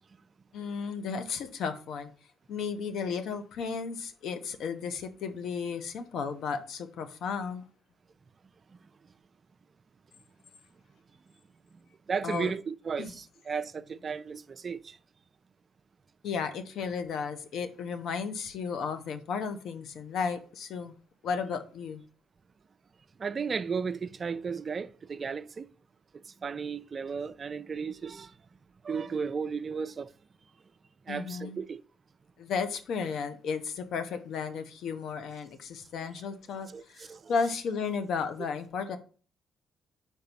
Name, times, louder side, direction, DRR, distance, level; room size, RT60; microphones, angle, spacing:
voice 1, 0.5-2.1 2.5-7.6 12.2-12.5 13.0-13.1 16.2-20.9 21.2-22.0 31.1-31.6 32.4-39.0, left 5 dB, 75° left, 1.0 m, -34 dB
voice 2, 12.1-15.0 23.2-25.7 26.4-28.3 28.8-30.1 31.1-31.8 36.7-37.3, right 5 dB, 40° right, 0.5 m, -34 dB
4.6 x 4.6 x 5.4 m
cardioid pair, 90°, 0 cm